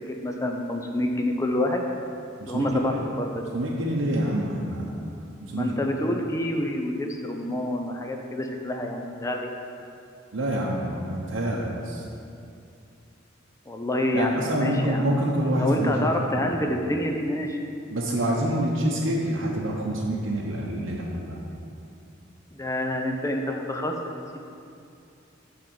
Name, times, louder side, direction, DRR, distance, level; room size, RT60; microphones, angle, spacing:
voice 1, 0.1-1.8 2.5-3.3 5.5-9.5 13.7-15.0 15.5-17.6 22.5-24.4, left 1 dB, 15° left, 2 dB, 0.6 m, -27 dB
voice 2, 2.4-3.0 3.5-5.0 5.4-5.7 10.3-12.0 14.1-16.5 17.9-21.4, right 1 dB, 80° right, -3 dB, 0.9 m, -27 dB
8.8 x 3.8 x 7.0 m, 2.5 s
head